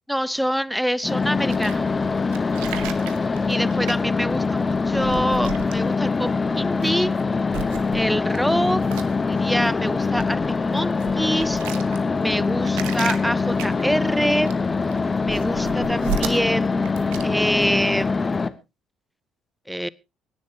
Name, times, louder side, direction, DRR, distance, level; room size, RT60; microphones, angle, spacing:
voice 1, 0.1-1.9 3.5-7.1 7.9-11.6 12.1-14.5 15.2-18.5 19.7-19.9, equal, ahead, 22 dB, 0.6 m, -25 dB
sound 1, 1.0-18.5, left 4 dB, 25° left, 1.1 m, -23 dB
sound 2, 1.5-6.3 6.7-7.2 7.5-18.2, right 8 dB, 65° right, 1.0 m, -36 dB
24.0 x 10.5 x 2.8 m, 0.27 s
figure-of-eight pair, 50°, 0 cm